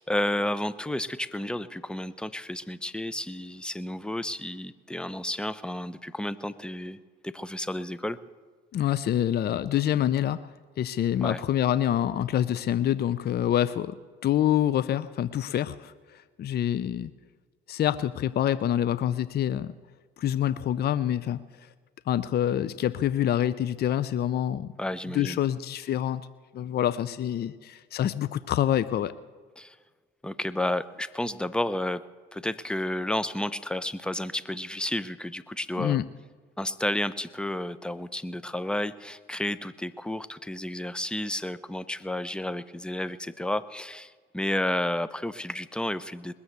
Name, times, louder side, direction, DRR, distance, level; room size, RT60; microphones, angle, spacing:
voice 1, 0.0-8.2 11.2-11.4 24.8-25.4 29.6-29.8 30.2-32.0 32.3-36.0 36.6-46.3, left 1 dB, 5° left, 16 dB, 0.7 m, -31 dB
voice 2, 8.7-10.4 10.8-14.0 14.2-17.1 17.7-19.7 20.2-21.4 22.1-24.7 25.1-26.2 26.5-29.1 35.8-36.1, left 11 dB, 50° left, 16 dB, 0.6 m, -26 dB
20.5 x 7.1 x 8.0 m, 1.5 s
supercardioid pair, 65°, 21 cm